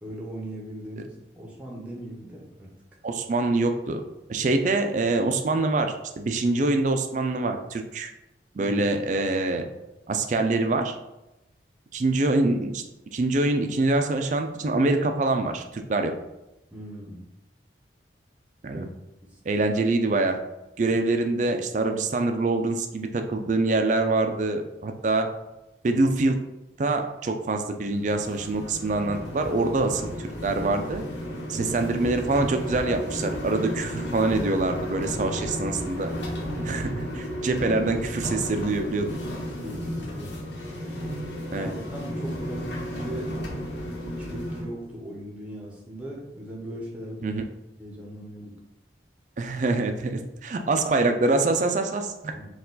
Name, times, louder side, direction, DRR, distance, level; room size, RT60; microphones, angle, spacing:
voice 1, 0.0-2.7 8.5-8.8 9.1-9.2 16.7-17.2 18.7-18.9 20.9-21.0 31.5-31.8 39.6-40.3 41.5-43.3 44.0-47.4 47.8-48.5 52.3-52.5, right 1 dB, 5° right, -3 dB, 0.8 m, -39 dB
voice 2, 3.0-4.0 4.3-8.1 8.6-9.6 10.1-10.9 11.9-12.8 13.1-16.1 18.6-18.9 19.5-20.4 20.8-25.3 25.8-26.4 26.8-31.0 31.5-36.1 36.6-39.2 41.5-41.7 47.2-47.4 49.4-52.3, right 2 dB, 45° right, 6 dB, 0.4 m, -25 dB
sound 1, 27.9-44.6, equal, 80° left, 1.1 m, -33 dB
4.4 x 2.4 x 3.8 m, 0.96 s
head